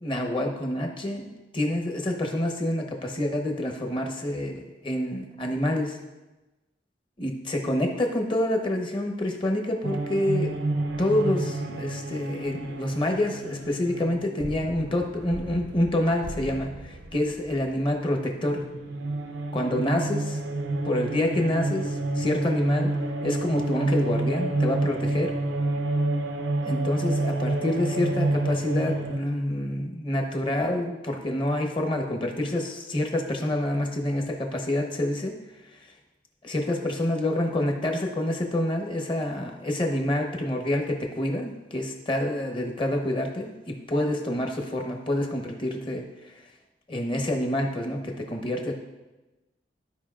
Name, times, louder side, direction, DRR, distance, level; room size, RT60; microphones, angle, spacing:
voice 1, 0.0-6.0 7.2-10.5 11.0-18.6 19.5-20.4 20.8-22.9 23.2-25.5 26.6-35.3 36.4-46.3 46.9-48.7, left 1 dB, 30° left, 2 dB, 1.0 m, -27 dB
sound 1, 9.8-18.0 18.3-29.2, right 2 dB, 85° right, 0.7 m, -29 dB
13.5 x 5.0 x 2.4 m, 1.1 s
head